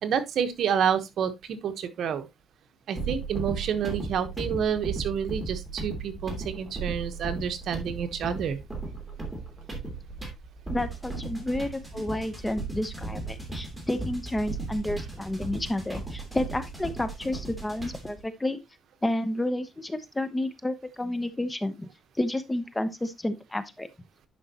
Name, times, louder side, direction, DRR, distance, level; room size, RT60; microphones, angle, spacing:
voice 1, 0.0-2.3 2.9-8.6, right 8 dB, 65° right, 1.1 m, -29 dB
sound 1, 2.9-18.2, right 3 dB, 5° right, 2.8 m, -36 dB
voice 2, 10.7-18.6 19.0-21.9 22.2-23.9, left 1 dB, 10° left, 0.9 m, -30 dB
11.0 x 5.4 x 2.9 m
cardioid pair, 130°, 0 cm